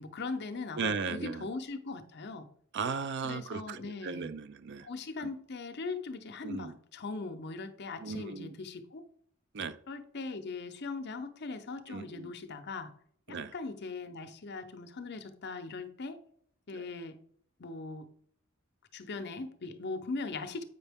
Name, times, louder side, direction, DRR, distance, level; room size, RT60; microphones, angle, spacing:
voice 1, 0.0-2.5 3.2-4.3 4.8-9.1 9.9-12.9 13.3-16.2 16.7-17.2 17.6-18.1 18.9-20.6, left 3 dB, 55° left, 0.7 m, -40 dB
voice 2, 0.8-1.5 2.7-4.9 5.2-5.3 6.4-6.7 8.0-8.5 9.5-9.8 11.9-12.3 13.3-13.5 16.7-16.8, right 5 dB, 55° right, 0.5 m, -36 dB
8.1 x 5.4 x 3.5 m
head